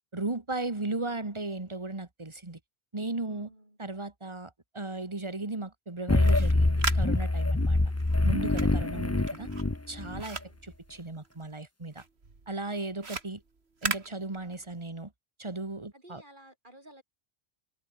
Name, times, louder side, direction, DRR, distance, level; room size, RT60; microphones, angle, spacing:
voice 1, 0.1-2.6 2.9-3.5 3.8-7.8 8.2-9.5 9.9-12.0 12.5-13.4 13.8-15.1 15.4-16.2, right 2 dB, 25° right, 1.9 m, -36 dB
voice 2, 3.3-3.8 10.1-10.6 12.7-13.2 15.9-17.0, right 1 dB, 50° right, 8.3 m, -55 dB
sound 1, 6.1-10.2, left 2 dB, 15° left, 1.0 m, -25 dB
sound 2, 6.1-11.6 11.9-14.9, right 4 dB, 80° right, 2.6 m, -39 dB
omnidirectional pair, 1.1 m